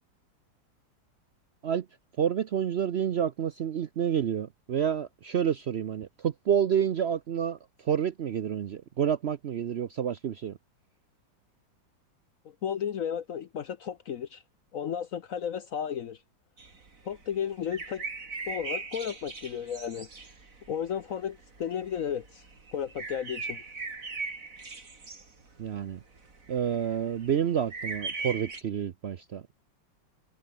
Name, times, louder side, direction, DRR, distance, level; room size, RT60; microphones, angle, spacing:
voice 1, 2.2-10.6 25.6-26.0 26.5-29.5, right 8 dB, 80° right, 0.5 m, -29 dB
voice 2, 12.6-14.4 14.7-16.2 17.0-18.1 18.5-20.1 20.7-22.4 22.7-23.6, left 8 dB, 60° left, 0.9 m, -33 dB
sound 1, 16.6-28.6, right 3 dB, 45° right, 3.5 m, -39 dB
omnidirectional pair, 2.1 m